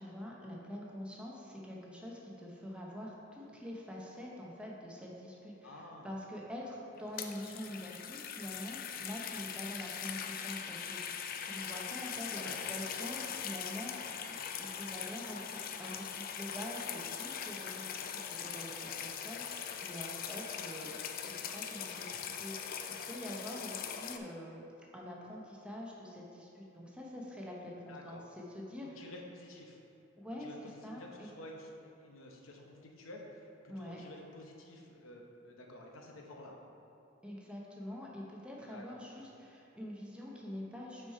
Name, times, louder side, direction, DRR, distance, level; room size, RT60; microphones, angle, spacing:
voice 1, 0.0-18.2 18.5-22.8 23.0-24.7 24.9-29.1 30.2-30.5 30.8-31.3 33.7-34.1 37.2-41.1, left 1 dB, 5° right, -3 dB, 0.7 m, -45 dB
voice 2, 5.6-6.2 12.4-12.7 27.9-28.2 29.0-29.8 30.4-36.6 38.7-39.0, left 1 dB, 85° left, 1 dB, 0.8 m, -51 dB
sound 1, 7.0-24.2, left 7 dB, 45° left, 0.3 m, -41 dB
5.9 x 4.7 x 4.7 m, 2.8 s
head